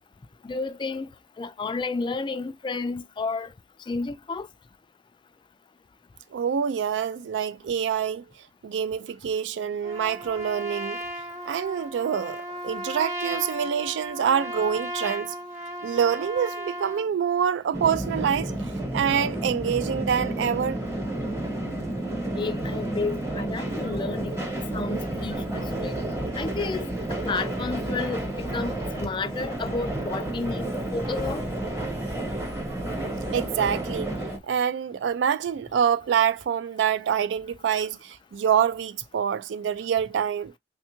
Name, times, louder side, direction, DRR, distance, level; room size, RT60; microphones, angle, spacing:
voice 1, 0.4-1.1 1.4-3.5 3.9-4.5 22.4-24.4 24.7-26.0 26.4-31.4, left 4 dB, 25° left, 0.3 m, -31 dB
voice 2, 6.3-8.2 8.6-11.0 11.4-15.3 15.8-18.5 18.9-20.8 33.3-34.2 34.5-40.5, right 8 dB, 75° right, 0.3 m, -26 dB
Trumpet, 9.8-17.1, right 1 dB, 40° right, 0.9 m, -35 dB
sound 1, 17.7-34.4, right 1 dB, 15° right, 1.0 m, -31 dB
3.4 x 2.3 x 2.9 m
head